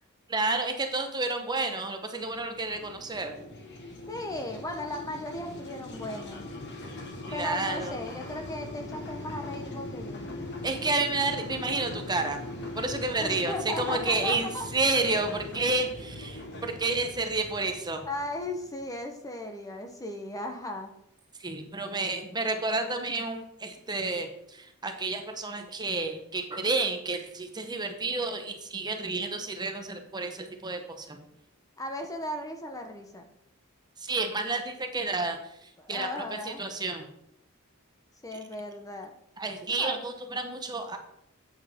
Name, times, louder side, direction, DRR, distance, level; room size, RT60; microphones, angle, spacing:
voice 1, 0.3-3.3 7.3-7.9 10.6-12.4 12.7-18.0 21.4-31.2 34.0-35.4 35.9-37.1 39.4-41.0, right 3 dB, 20° right, 5 dB, 0.9 m, -30 dB
sound 1, 2.2-18.8, left 2 dB, 55° left, 1.4 m, -41 dB
voice 2, 4.1-6.5 7.3-10.2 13.2-14.7 18.0-20.9 31.8-33.3 35.8-36.6 38.2-39.1 39.8-40.0, left 1 dB, 15° left, 4 dB, 0.8 m, -36 dB
8.4 x 8.1 x 3.6 m, 0.76 s
head